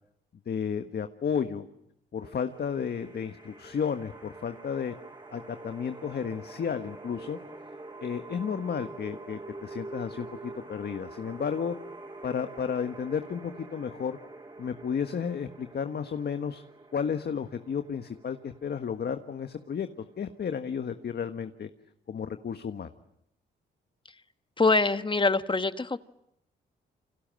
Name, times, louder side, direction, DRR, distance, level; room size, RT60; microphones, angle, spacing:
voice 1, 0.5-1.6 2.1-4.9 5.3-7.4 8.0-11.8 12.2-14.2 14.6-16.6 16.9-19.9 20.2-21.7 22.1-22.9, left 7 dB, 55° left, 8 dB, 1.5 m, -32 dB
sound 1, 2.2-21.2, right 2 dB, 25° right, 7.5 m, -46 dB
voice 2, 24.6-26.0, left 3 dB, 25° left, 11 dB, 1.4 m, -24 dB
29.5 x 26.0 x 7.7 m, 0.77 s
cardioid pair, 70°, 20 cm